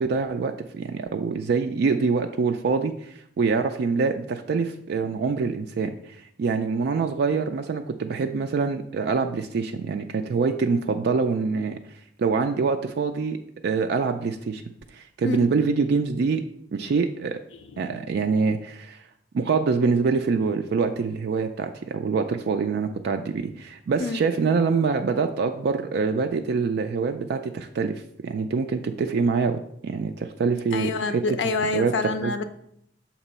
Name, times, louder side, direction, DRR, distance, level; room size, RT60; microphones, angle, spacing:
voice 1, 0.0-11.8 12.2-13.4 13.6-14.6 14.9-16.4 16.7-17.4 17.8-19.0 19.3-31.4 31.7-31.9 32.2-32.4, right 4 dB, 60° right, 6 dB, 0.3 m, -25 dB
voice 2, 30.7-32.4, left 3 dB, 65° left, 8 dB, 0.4 m, -27 dB
6.6 x 3.0 x 5.4 m, 0.73 s
head